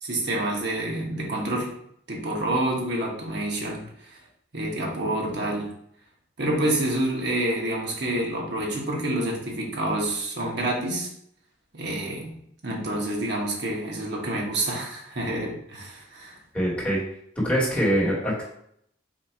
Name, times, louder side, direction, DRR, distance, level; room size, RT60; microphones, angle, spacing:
voice 1, 0.0-1.7 2.1-4.2 4.5-5.7 6.4-11.1 11.7-12.3 12.6-16.4, right 1 dB, 65° right, -1 dB, 1.1 m, -28 dB
voice 2, 16.5-17.0 17.3-18.5, equal, 5° left, -6 dB, 1.5 m, -24 dB
4.2 x 2.6 x 4.3 m, 0.70 s
head